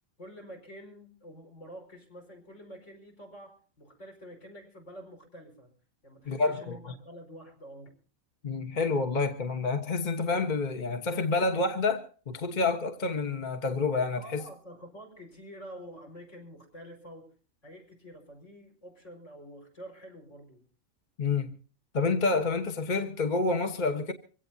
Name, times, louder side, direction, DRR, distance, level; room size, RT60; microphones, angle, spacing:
voice 1, 0.2-5.7 6.0-8.0 14.2-17.3 17.6-20.7, equal, 60° left, 5.5 m, -48 dB
voice 2, 6.3-6.8 8.4-14.4 21.2-21.5 21.9-24.1, left 3 dB, 35° left, 1.2 m, -28 dB
24.5 x 16.5 x 2.7 m
omnidirectional pair, 1.4 m